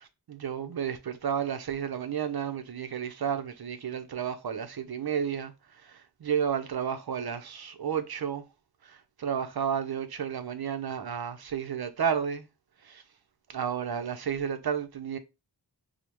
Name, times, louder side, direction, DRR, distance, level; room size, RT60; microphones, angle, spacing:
voice 1, 0.3-5.5 5.8-8.4 8.8-12.5 12.8-13.0 13.5-15.2, right 8 dB, 60° right, 0.5 m, -32 dB
5.0 x 2.1 x 2.9 m
wide cardioid pair, 65°, 42 cm